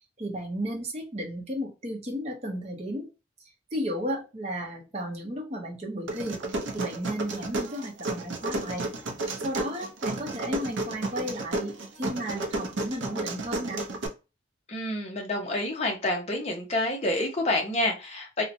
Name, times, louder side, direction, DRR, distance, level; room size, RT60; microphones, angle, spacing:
voice 1, 0.2-3.1 3.4-6.4 6.7-8.9 9.4-13.8, equal, 35° right, 0 dB, 0.7 m, -34 dB
sound 1, 6.1-14.1, right 2 dB, 80° right, 0.5 m, -32 dB
voice 2, 14.7-18.4, left 1 dB, 35° left, 1 dB, 0.7 m, -28 dB
2.7 x 2.1 x 2.6 m, 0.29 s
head